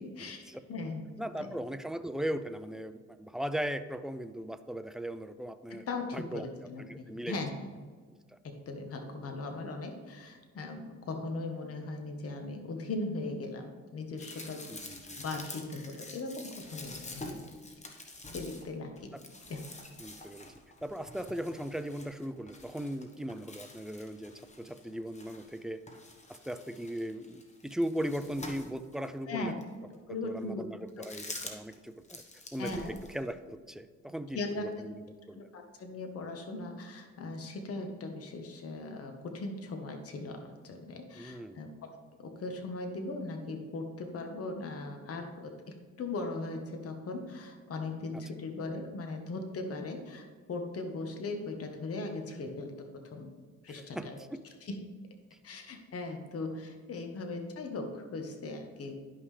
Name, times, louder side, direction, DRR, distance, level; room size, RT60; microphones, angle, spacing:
voice 1, 0.0-0.4 0.7-1.0 1.4-1.5 5.7-7.5 8.4-14.7 15.2-17.6 18.3-19.1 19.5-19.6 29.3-29.6 30.1-30.6 32.6-32.9 34.3-34.7 35.3-41.9 42.2-53.3 53.6-54.2 54.6-54.8 55.4-59.0, left 2 dB, 50° left, 4 dB, 1.3 m, -39 dB
voice 2, 1.2-5.8 6.1-7.4 8.3-8.4 14.7-15.2 20.0-20.5 20.8-25.8 26.3-29.5 30.2-32.2 32.5-35.4 41.1-41.6 53.7-54.4, equal, ahead, 10 dB, 0.4 m, -38 dB
sound 1, 14.2-25.6 25.9-29.1 29.6-29.7 30.9-31.8 32.0-33.3, left 2 dB, 25° left, 1.2 m, -47 dB
11.0 x 5.5 x 3.3 m, 1.5 s
cardioid pair, 90°, 30 cm